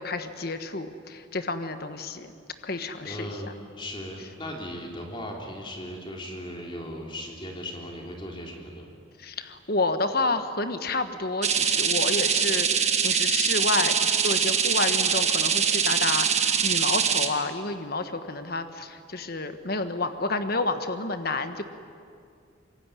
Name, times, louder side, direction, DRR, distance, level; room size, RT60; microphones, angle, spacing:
voice 1, 0.0-2.3 2.6-3.5 9.2-21.6, left 3 dB, 50° left, 8 dB, 1.4 m, -30 dB
voice 2, 2.7-8.9, equal, 25° left, 0 dB, 3.4 m, -37 dB
sound 1, 11.4-17.3, right 7 dB, 35° right, 1.7 m, -23 dB
25.5 x 22.5 x 9.9 m, 2.3 s
head